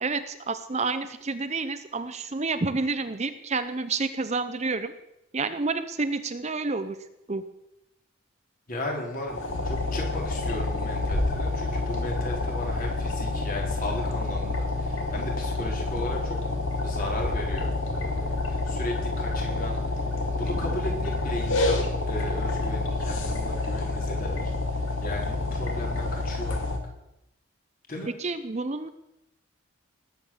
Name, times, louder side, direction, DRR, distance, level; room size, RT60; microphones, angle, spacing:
voice 1, 0.0-4.9 5.3-7.4 28.2-28.9, right 3 dB, 30° right, 11 dB, 0.7 m, -29 dB
voice 2, 8.7-16.4 16.8-19.8 20.3-24.5 25.0-26.7 27.9-28.1, left 1 dB, 40° left, 0 dB, 4.3 m, -36 dB
sound 1, 9.3-26.8, left 2 dB, 65° left, 2.5 m, -28 dB
19.5 x 8.7 x 7.3 m, 0.86 s
head